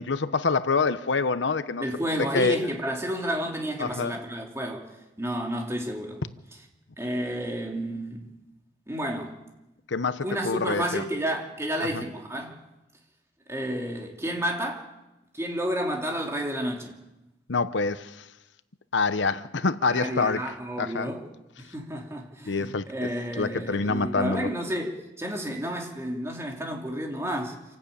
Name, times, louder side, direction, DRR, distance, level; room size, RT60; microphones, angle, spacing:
voice 1, 0.0-1.8 2.2-2.6 3.8-4.1 9.9-11.0 11.8-12.0 17.5-18.2 18.9-20.4 20.8-21.1 22.5-22.9 23.4-24.5, left 4 dB, 85° left, 0.9 m, -26 dB
voice 2, 1.8-4.9 5.2-6.2 7.0-8.3 8.9-9.3 10.2-12.6 13.5-14.9 15.3-17.0 19.9-21.2 21.6-27.6, equal, 15° right, 2.8 m, -31 dB
27.0 x 12.0 x 8.7 m
head